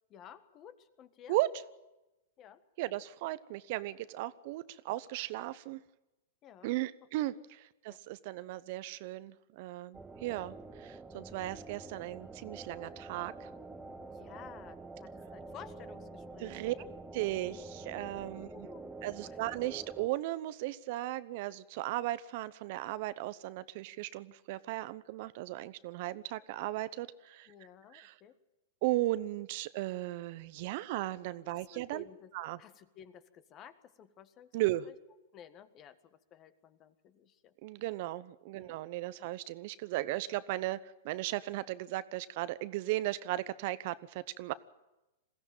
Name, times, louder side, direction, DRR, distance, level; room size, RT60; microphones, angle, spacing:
voice 1, 0.1-1.4 2.4-2.6 6.4-6.7 7.3-7.4 7.9-8.0 14.1-16.9 18.3-19.4 27.5-28.3 31.5-32.3 32.6-34.5 34.9-35.0 35.3-37.5 38.6-38.8, left 9 dB, 35° left, 12 dB, 1.6 m, -54 dB
voice 2, 2.8-5.8 6.6-13.5 16.4-16.7 17.1-18.7 19.0-27.5 27.9-28.1 28.8-32.0 32.3-32.6 34.5-34.9 37.6-40.8 41.0-44.5, right 17 dB, 55° right, 15 dB, 0.9 m, -36 dB
sound 1, 9.9-20.1, right 3 dB, 10° right, 1.4 m, -47 dB
21.5 x 15.5 x 9.0 m, 1.0 s
hypercardioid pair, 115°, 0 cm